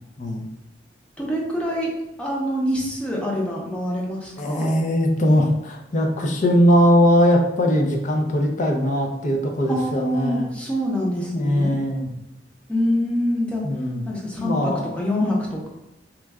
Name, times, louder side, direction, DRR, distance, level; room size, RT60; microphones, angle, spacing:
voice 1, 1.2-4.7 9.7-11.7 12.7-13.6 14.0-15.7, equal, 5° left, -3 dB, 0.7 m, -25 dB
voice 2, 4.4-10.5 11.3-12.1 13.6-14.0 14.4-14.9, equal, 45° left, 1 dB, 0.5 m, -20 dB
3.1 x 2.2 x 3.4 m, 0.89 s
head